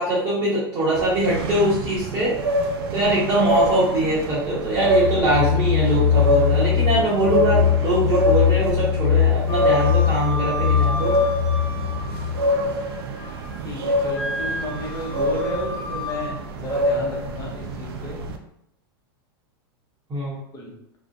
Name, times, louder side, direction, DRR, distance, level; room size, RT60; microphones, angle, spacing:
voice 1, 0.0-2.4 2.9-11.1 20.1-20.4, right 1 dB, 30° right, -8 dB, 0.8 m, -22 dB
sound 1, 0.9-18.4, equal, 75° right, 0.4 m, -26 dB
sound 2, 4.7-12.5, left 8 dB, 45° left, 1.1 m, -21 dB
Wind instrument woodwind instrument, 9.5-12.5 12.9-13.6 14.1-16.3, equal, 70° left, 0.8 m, -32 dB
voice 2, 13.6-18.2 20.5-20.8, left 1 dB, 30° left, -1 dB, 0.7 m, -33 dB
2.4 x 2.0 x 2.5 m, 0.77 s
hypercardioid pair, 120°, 13 cm